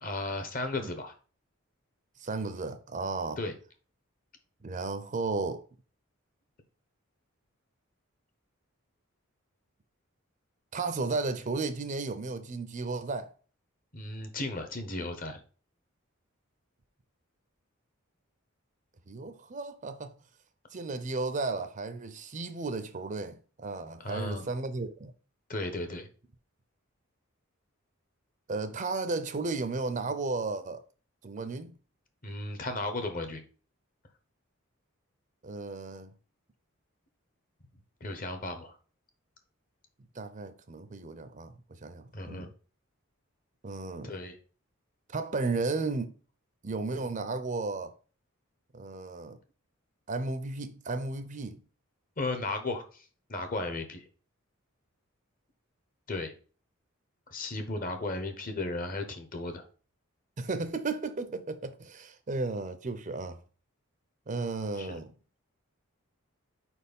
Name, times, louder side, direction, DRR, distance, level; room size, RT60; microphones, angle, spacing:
voice 1, 0.0-1.1 3.4-3.5 13.9-15.4 24.0-24.4 25.5-26.1 32.2-33.4 38.0-38.8 42.1-42.5 44.0-44.4 52.2-54.0 56.1-56.3 57.3-59.6 64.8-65.0, left 2 dB, 40° left, 1.1 m, -35 dB
voice 2, 2.2-3.4 4.6-5.6 10.7-13.3 19.1-20.1 20.7-25.1 28.5-30.8 31.2-31.8 35.4-36.1 40.1-42.5 43.6-44.1 45.1-46.1 46.6-47.9 48.7-49.4 50.1-51.6 60.4-63.4 64.3-65.1, right 3 dB, 35° right, 0.5 m, -34 dB
4.7 x 4.3 x 5.3 m
head